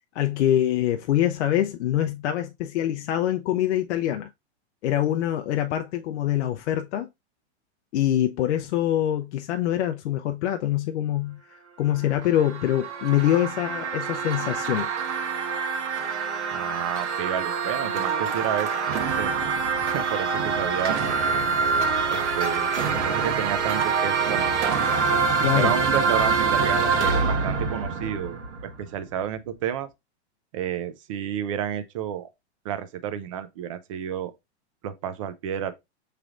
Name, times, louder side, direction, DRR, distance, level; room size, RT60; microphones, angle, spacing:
voice 1, 0.1-4.3 4.8-7.1 7.9-14.9 25.4-25.7, left 12 dB, 70° left, 0.5 m, -24 dB
sound 1, 12.0-28.9, right 5 dB, 85° right, 1.2 m, -25 dB
voice 2, 16.5-19.3 19.8-21.0 22.1-22.7 23.0-24.8 25.5-28.4 28.8-29.9 30.5-32.3 32.6-34.3 34.8-35.7, right 10 dB, 30° right, 0.3 m, -31 dB
6.1 x 3.3 x 2.4 m
supercardioid pair, 155°, 35 cm